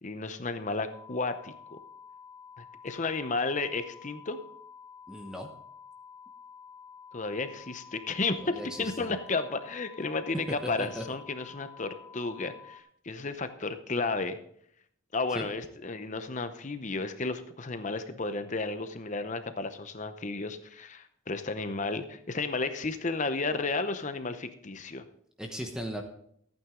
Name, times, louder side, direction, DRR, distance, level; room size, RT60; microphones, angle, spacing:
voice 1, 0.0-1.8 2.6-4.4 7.1-14.4 15.1-25.0, left 3 dB, 35° left, 10 dB, 0.7 m, -33 dB
sound 1, 0.9-12.8, left 6 dB, 10° left, 1.8 m, -50 dB
voice 2, 5.1-5.5 8.4-8.9 10.6-11.0 15.3-15.5 25.4-26.0, equal, 5° right, 3 dB, 0.9 m, -37 dB
14.5 x 9.0 x 3.8 m, 0.67 s
head